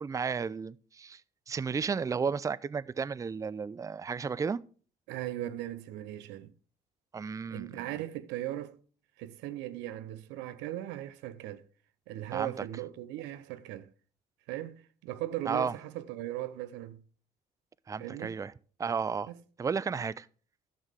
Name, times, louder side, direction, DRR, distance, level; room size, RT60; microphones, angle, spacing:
voice 1, 0.0-1.2 1.5-4.6 7.1-7.8 12.3-12.5 15.5-15.7 17.9-18.5 18.8-19.3 19.6-20.3, right 5 dB, 20° right, 0.3 m, -33 dB
voice 2, 5.1-6.5 7.5-8.8 9.2-11.7 12.1-13.9 14.5-17.0 18.0-18.4 19.3-19.4, right 14 dB, 85° right, 0.6 m, -38 dB
12.5 x 6.4 x 3.5 m
supercardioid pair, 75°, 18 cm